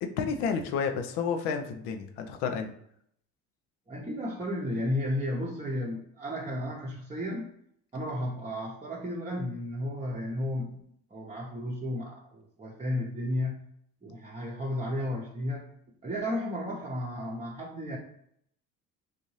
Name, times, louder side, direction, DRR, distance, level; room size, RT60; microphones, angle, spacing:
voice 1, 0.0-2.7, left 6 dB, 70° left, 6 dB, 0.7 m, -31 dB
voice 2, 3.9-7.5 7.9-10.8 11.1-13.7 14.0-15.7 16.0-18.0, left 1 dB, 15° right, -4 dB, 0.8 m, -33 dB
4.0 x 2.6 x 3.1 m, 0.70 s
hypercardioid pair, 65°, 41 cm